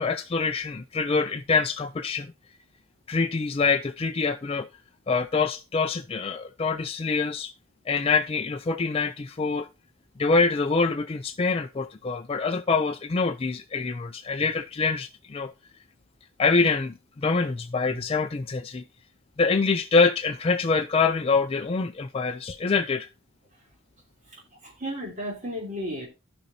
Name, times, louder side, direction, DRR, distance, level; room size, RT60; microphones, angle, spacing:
voice 1, 0.0-2.3 3.1-4.7 5.1-7.5 7.9-9.7 10.2-15.5 16.4-18.8 19.4-23.1, left 4 dB, 30° left, 0.4 m, -25 dB
voice 2, 24.6-26.1, equal, 35° right, 3.1 m, -33 dB
15.0 x 5.3 x 2.7 m
head